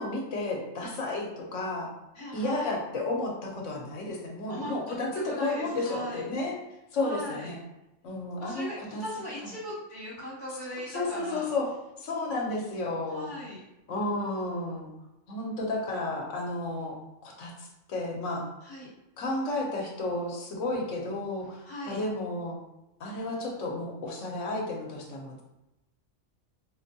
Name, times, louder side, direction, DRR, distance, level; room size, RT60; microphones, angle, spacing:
voice 1, 0.0-1.9 2.3-6.5 6.9-7.6 8.0-9.0 9.4-9.5 10.5-10.6 10.9-11.7 12.0-13.3 13.9-14.9 15.3-16.9 17.2-18.4 19.2-22.6 23.0-25.4, left 2 dB, 75° left, -1 dB, 1.1 m, -32 dB
voice 2, 2.1-2.8 4.5-4.7 5.2-6.2 7.0-7.5 8.4-11.5 13.1-13.6 18.6-18.9 21.4-22.0, equal, 40° left, -8 dB, 1.4 m, -39 dB
3.9 x 2.2 x 2.7 m, 0.94 s
omnidirectional pair, 1.3 m